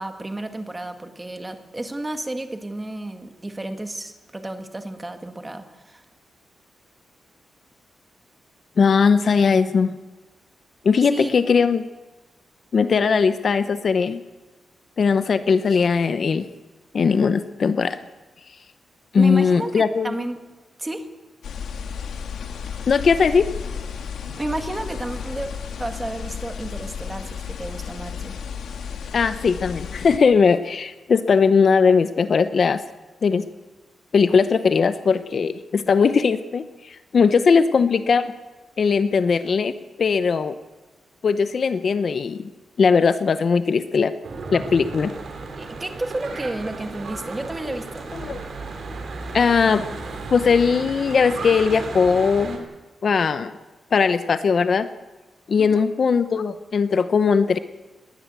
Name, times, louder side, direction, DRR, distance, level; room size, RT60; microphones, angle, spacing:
voice 1, 0.0-6.0 11.1-11.3 19.2-20.4 20.8-21.0 24.2-25.5 25.8-28.3 45.6-48.0 55.6-55.8, right 1 dB, 15° right, 7 dB, 1.8 m, -31 dB
voice 2, 8.8-9.9 10.8-11.8 12.7-14.2 15.0-16.5 16.9-18.0 19.1-20.1 22.9-23.5 29.1-32.8 33.2-33.5 34.1-38.3 38.8-40.6 41.2-42.5 42.8-44.1 44.5-45.1 48.2-48.4 49.3-49.9 50.3-52.7 53.0-53.5 53.9-54.9 55.5-57.6, left 5 dB, 45° left, 12 dB, 0.8 m, -19 dB
sound 1, 21.4-30.2, left 7 dB, 80° left, 2.0 m, -33 dB
Church bell / Traffic noise roadway noise, 44.2-52.6, right 3 dB, 45° right, 3.7 m, -34 dB
19.5 x 19.5 x 8.2 m, 1.2 s
wide cardioid pair, 175°, 0 cm